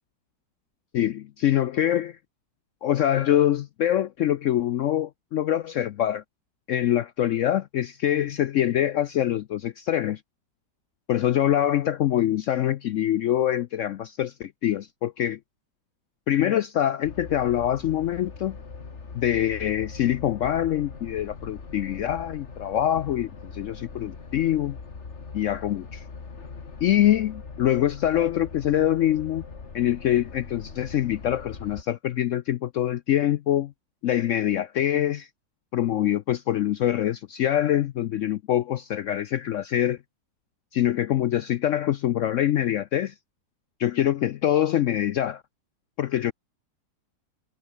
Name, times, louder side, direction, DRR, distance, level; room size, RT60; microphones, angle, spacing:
voice 1, 0.9-2.2 2.8-6.2 6.7-10.2 11.1-15.4 16.3-18.6 19.1-24.8 25.3-26.0 26.8-29.4 29.7-33.7 34.0-35.3 35.7-40.0 40.7-43.1 43.8-45.4 46.0-46.3, left 11 dB, 70° left, 0.7 m, -24 dB
sound 1, 17.0-31.8, left 4 dB, 45° left, 2.3 m, -41 dB
omnidirectional pair, 1.7 m